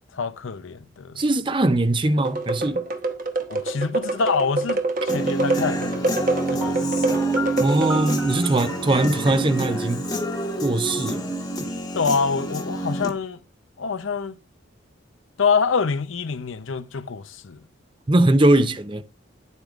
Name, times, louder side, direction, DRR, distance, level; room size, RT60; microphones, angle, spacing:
voice 1, 0.1-1.2 3.5-6.1 6.5-7.1 11.9-13.4 13.8-14.4 15.4-17.6, left 5 dB, 85° left, 0.7 m, -26 dB
voice 2, 1.2-2.8 7.6-10.1 10.6-11.3 18.1-19.0, right 2 dB, 25° right, 0.5 m, -21 dB
sound 1, 2.2-8.2, right 2 dB, 45° right, 1.0 m, -26 dB
Human voice / Guitar, 5.1-13.1, right 2 dB, 20° left, 1.3 m, -27 dB
Piano, 6.6-11.5, left 1 dB, 5° right, 1.0 m, -37 dB
10.5 x 8.2 x 2.4 m
head